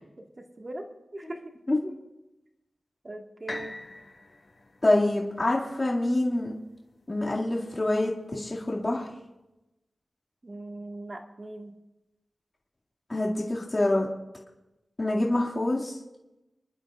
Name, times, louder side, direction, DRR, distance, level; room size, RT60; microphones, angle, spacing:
voice 1, 0.2-0.8 1.1-1.5 3.0-3.8 10.4-11.7, right 1 dB, 40° right, 2 dB, 1.6 m, -40 dB
sound 1, 3.5-7.4 8.0-8.1, left 2 dB, 55° left, 2.1 m, -44 dB
voice 2, 4.8-6.5 7.1-9.1 13.1-14.1 15.0-16.0, left 1 dB, 35° left, -5 dB, 2.1 m, -26 dB
26.0 x 11.5 x 2.4 m, 0.96 s
wide cardioid pair, 65°, 0 cm